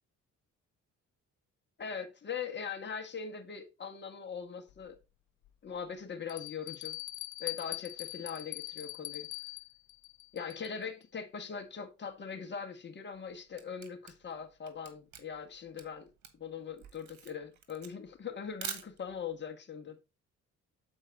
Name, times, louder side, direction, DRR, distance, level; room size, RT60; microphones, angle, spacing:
voice 1, 1.8-5.0 5.6-7.0 7.4-9.3 10.3-16.1 16.4-20.0, left 6 dB, 35° left, 1.6 m, -41 dB
Bell, 4.7-4.8 5.4-5.5 6.3-10.9, left 15 dB, 80° left, 0.6 m, -42 dB
Camera, 13.1-19.4, right 8 dB, 70° right, 1.7 m, -46 dB
7.6 x 4.4 x 4.3 m
cardioid pair, 90°, 30 cm